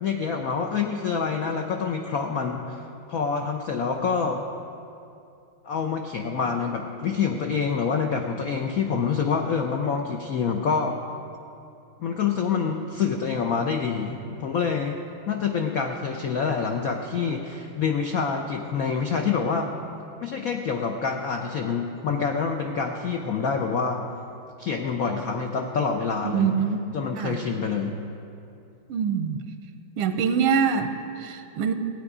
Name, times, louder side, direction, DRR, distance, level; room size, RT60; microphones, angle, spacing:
voice 1, 0.0-2.8 3.1-4.4 5.6-11.0 12.0-15.0 15.3-19.7 20.2-24.0 24.6-26.6 26.9-28.0, left 5 dB, 90° left, 3 dB, 0.7 m, -26 dB
voice 2, 26.2-26.8 27.2-27.4 28.9-29.4 30.0-31.7, right 7 dB, 85° right, 8 dB, 1.6 m, -24 dB
16.0 x 9.2 x 4.9 m, 2.6 s
omnidirectional pair, 2.4 m